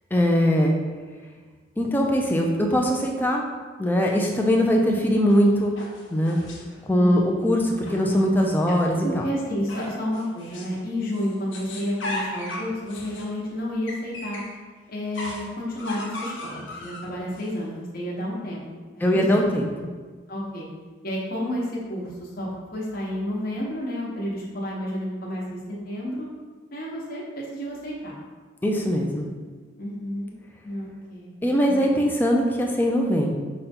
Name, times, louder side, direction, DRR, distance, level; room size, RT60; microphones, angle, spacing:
voice 1, 0.1-0.7 1.8-3.4 3.8-5.7 6.1-6.4 6.9-9.2 19.0-19.9 28.6-29.3 31.4-33.3, equal, 10° left, 0 dB, 0.4 m, -21 dB
sound 1, 5.3-6.8 7.7-9.1 9.7-10.8 11.1-14.6 15.1-17.5, left 1 dB, 80° left, 0.7 m, -37 dB
voice 2, 9.0-14.4 14.9-18.7 18.9-19.2 20.3-20.7 21.0-25.6 25.8-26.3 26.7-28.2 29.8-30.3 30.6-31.4 31.6-31.8, left 1 dB, 50° left, -5 dB, 0.9 m, -31 dB
5.1 x 2.3 x 4.2 m, 1.4 s
head